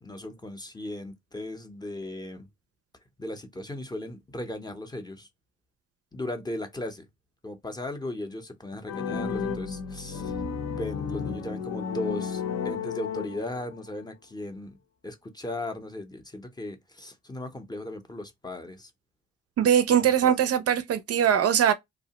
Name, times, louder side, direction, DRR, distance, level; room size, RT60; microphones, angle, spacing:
voice 1, 0.0-2.5 3.2-5.3 6.1-7.1 7.4-10.3 10.6-14.8 15.0-18.9 19.9-20.3, left 1 dB, 15° left, 0.6 m, -37 dB
sound 1, 8.9-13.8, left 6 dB, 65° left, 0.7 m, -32 dB
voice 2, 19.6-21.7, right 9 dB, 55° right, 0.4 m, -21 dB
2.8 x 2.0 x 2.8 m
cardioid pair, 90°, 30 cm